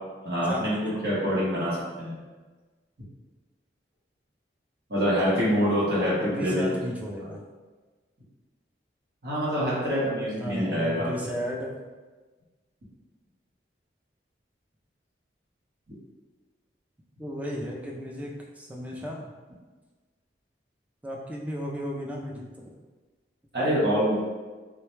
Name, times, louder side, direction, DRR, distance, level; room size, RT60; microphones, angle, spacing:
voice 1, 0.2-2.1 4.9-6.6 9.2-11.1 23.5-24.2, equal, 60° right, -7 dB, 1.1 m, -25 dB
voice 2, 6.2-7.4 10.4-11.7 17.2-19.2 21.0-22.6, equal, 10° right, -2 dB, 0.3 m, -34 dB
3.8 x 2.2 x 3.1 m, 1.3 s
head